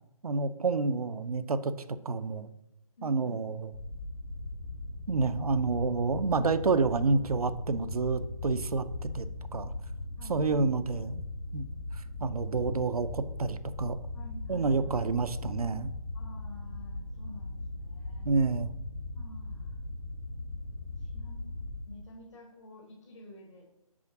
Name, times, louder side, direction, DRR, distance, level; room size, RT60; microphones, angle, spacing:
voice 1, 0.2-1.7 2.0-2.5 3.0-3.7 5.1-8.8 9.1-9.3 9.5-9.7 10.3-11.2 11.5-11.7 12.2-14.0 14.5-15.9 18.3-18.7, right 4 dB, 80° right, 13 dB, 0.6 m, -28 dB
voice 2, 3.0-3.4 10.2-10.8 14.1-15.1 16.1-18.3 19.2-19.8 21.0-21.5 21.9-23.7, left 1 dB, 50° left, -2 dB, 1.9 m, -49 dB
sound 1, 3.7-21.8, left 2 dB, 75° left, 2.0 m, -39 dB
6.2 x 5.0 x 5.8 m, 0.85 s
figure-of-eight pair, 150°, 19 cm